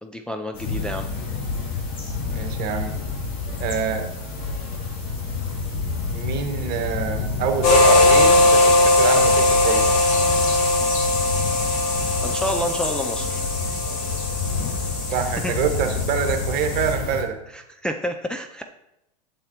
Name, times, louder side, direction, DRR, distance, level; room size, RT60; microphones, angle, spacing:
voice 1, 0.0-1.1 12.2-13.4 15.4-15.5 17.5-18.6, equal, 5° left, 3 dB, 0.4 m, -29 dB
sound 1, 0.5-17.2, left 4 dB, 40° left, 2.9 m, -29 dB
voice 2, 2.3-2.9 3.6-4.1 6.1-9.9 15.1-17.4, right 7 dB, 50° right, 6 dB, 1.4 m, -26 dB
sound 2, 7.6-16.9, left 2 dB, 55° left, 3.3 m, -20 dB
8.6 x 7.3 x 3.0 m, 0.84 s
hypercardioid pair, 105°, 21 cm